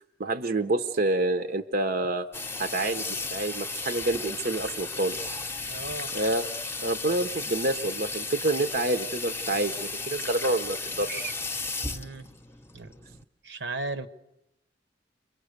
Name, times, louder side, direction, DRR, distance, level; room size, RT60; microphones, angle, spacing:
voice 1, 0.2-2.3 2.6-5.3 6.1-6.5 6.8-11.3, right 2 dB, 55° right, 0.8 m, -28 dB
Water tap faucet / Sink (filling or washing), 2.3-13.2, left 3 dB, 15° left, 0.8 m, -35 dB
voice 2, 5.7-6.1 11.9-12.3 12.7-12.9 13.4-14.1, right 2 dB, 75° right, 1.2 m, -35 dB
30.0 x 23.5 x 6.6 m
head